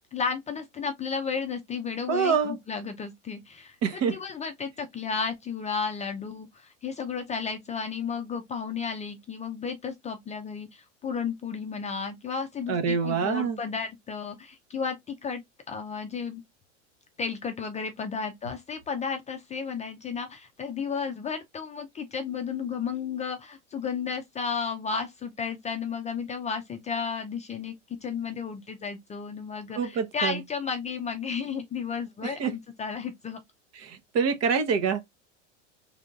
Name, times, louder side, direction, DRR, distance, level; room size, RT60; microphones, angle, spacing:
voice 1, 0.1-15.4 15.7-16.4 17.2-27.7 28.0-33.4, left 6 dB, 20° left, 0.5 m, -33 dB
voice 2, 2.1-2.6 3.8-4.2 12.7-13.6 29.8-30.4 32.2-32.5 33.7-35.0, right 6 dB, 45° right, 1.1 m, -26 dB
3.6 x 3.4 x 2.4 m
hypercardioid pair, 100°, 37 cm